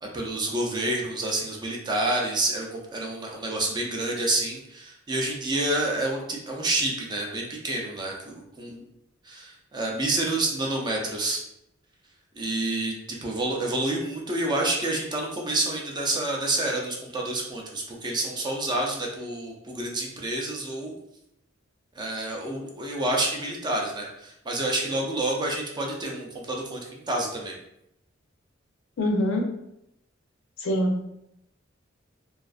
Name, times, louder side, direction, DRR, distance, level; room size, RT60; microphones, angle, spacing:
voice 1, 0.0-8.9 9.2-11.4 12.4-20.9 22.0-27.5, right 2 dB, 20° right, -1 dB, 0.4 m, -28 dB
voice 2, 29.0-29.5 30.6-31.1, equal, 80° left, 2 dB, 0.5 m, -24 dB
2.4 x 2.3 x 2.3 m, 0.80 s
head